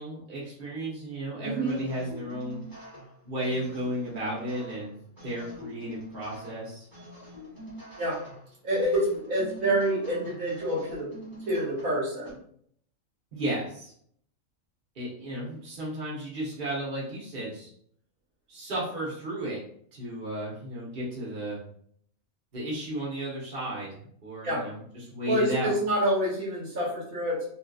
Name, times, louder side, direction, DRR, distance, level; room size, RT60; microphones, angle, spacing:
voice 1, 0.0-2.6 3.2-6.8 13.3-13.9 14.9-17.7 18.5-19.6 19.9-21.6 22.5-25.7, right 1 dB, 45° right, -6 dB, 1.2 m, -34 dB
voice 2, 1.4-1.8 8.0-8.2 8.6-11.1 11.5-12.3 24.4-24.6 25.3-27.5, right 1 dB, 75° right, -5 dB, 1.6 m, -27 dB
sound 1, 1.7-12.3, equal, 15° right, 1.2 m, -45 dB
2.8 x 2.7 x 2.4 m, 0.62 s
omnidirectional pair, 1.5 m